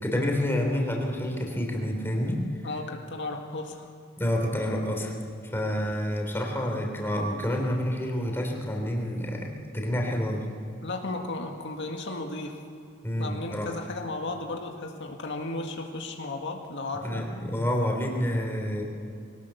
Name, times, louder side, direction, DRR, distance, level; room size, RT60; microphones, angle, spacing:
voice 1, 0.0-2.4 4.2-5.1 5.5-9.5 9.7-10.4 13.0-13.7 17.0-18.8, equal, 10° left, 0 dB, 3.6 m, -28 dB
voice 2, 2.6-3.9 10.8-12.6 13.2-17.3, left 2 dB, 60° left, 3 dB, 1.9 m, -34 dB
22.0 x 19.0 x 7.0 m, 2.5 s
head